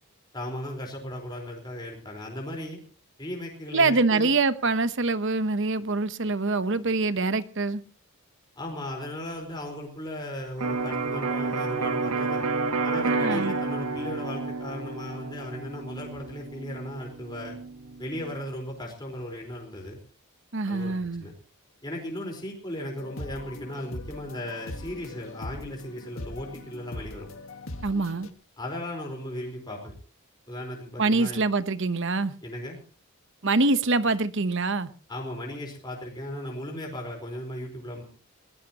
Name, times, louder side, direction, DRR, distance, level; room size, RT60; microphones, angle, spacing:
voice 1, 0.3-2.8 3.2-4.3 8.6-12.4 12.8-17.6 18.0-20.0 20.7-21.3 21.8-27.3 28.6-29.9 30.5-31.4 32.4-32.8 35.1-38.0, left 1 dB, 20° left, 4.6 m, -36 dB
voice 2, 3.7-7.8 13.1-13.6 20.5-21.3 27.8-28.3 31.0-32.3 33.4-34.9, right 3 dB, 55° right, 1.0 m, -25 dB
Electric guitar, 10.6-18.4, right 3 dB, 85° right, 1.5 m, -30 dB
sound 1, 23.0-28.3, left 1 dB, 65° left, 1.6 m, -40 dB
21.0 x 18.0 x 3.0 m
head